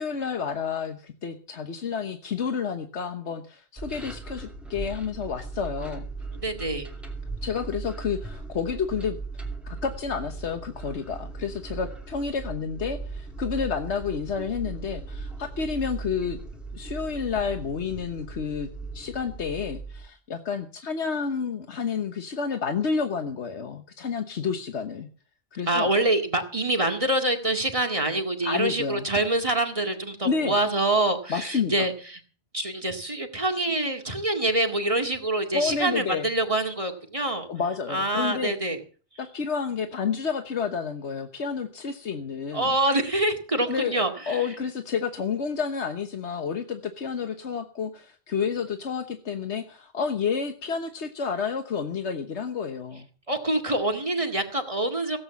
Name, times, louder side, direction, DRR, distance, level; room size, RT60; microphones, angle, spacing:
voice 1, 0.0-6.1 7.4-9.2 9.6-16.4 16.7-18.7 18.9-25.1 25.5-25.9 28.4-29.1 30.2-30.5 31.3-31.7 35.5-36.3 37.5-38.5 39.2-42.8 43.7-53.1, left 6 dB, 85° left, 7 dB, 1.5 m, -30 dB
sound 1, 3.8-20.1, right 3 dB, ahead, 2.9 m, -38 dB
voice 2, 6.4-6.9 25.7-32.2 32.5-37.5 37.9-38.8 42.5-44.4 53.3-55.2, right 2 dB, 30° right, 4 dB, 2.2 m, -26 dB
17.0 x 8.6 x 7.1 m, 0.39 s
omnidirectional pair, 1.1 m